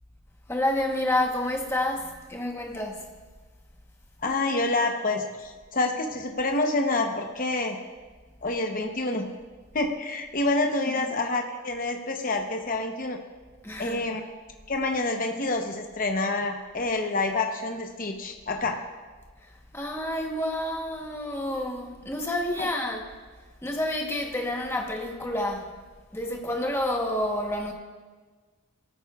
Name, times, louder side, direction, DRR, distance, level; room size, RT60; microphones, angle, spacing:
voice 1, 0.5-3.1 10.9-11.0 13.6-14.0 19.4-23.2 23.6-25.7 26.1-27.7, left 1 dB, 10° left, 1.1 m, -29 dB
voice 2, 4.2-7.8 8.4-9.3 9.7-13.2 13.8-14.3 14.7-18.8 22.6-22.7, left 2 dB, 40° left, 0.9 m, -27 dB
17.5 x 13.5 x 2.4 m
head